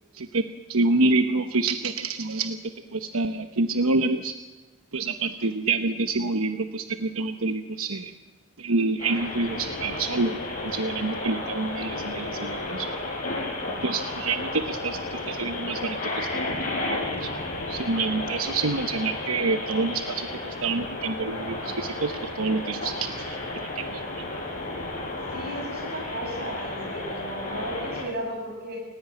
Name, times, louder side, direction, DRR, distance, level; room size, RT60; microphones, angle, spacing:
voice 1, 0.7-2.6 2.9-4.3 4.9-8.1 8.6-12.9 13.8-17.3 17.7-24.3, right 3 dB, 75° right, 8 dB, 1.1 m, -27 dB
sound 1, 9.0-28.0, left 2 dB, 35° left, 6.5 m, -33 dB
voice 2, 25.3-28.8, right 1 dB, 45° right, 2 dB, 7.7 m, -35 dB
29.5 x 16.5 x 9.1 m, 1.2 s
head